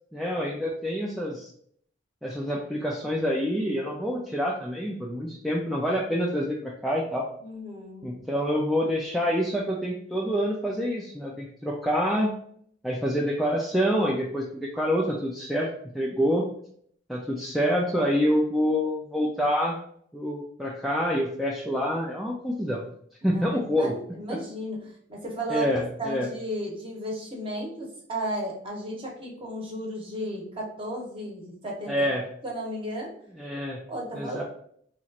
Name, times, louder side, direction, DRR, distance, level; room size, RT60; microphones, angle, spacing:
voice 1, 0.1-1.5 2.2-7.3 8.0-12.4 12.8-15.7 15.9-16.5 17.1-19.8 20.1-22.8 23.2-23.9 24.3-24.4 25.5-26.3 31.9-32.2 33.4-33.8 34.1-34.4, equal, ahead, -3 dB, 0.3 m, -27 dB
voice 2, 7.4-8.2 23.2-25.7 26.0-32.0 32.4-33.1 33.9-34.4, right 1 dB, 25° right, -2 dB, 0.9 m, -34 dB
3.0 x 2.4 x 4.0 m, 0.64 s
head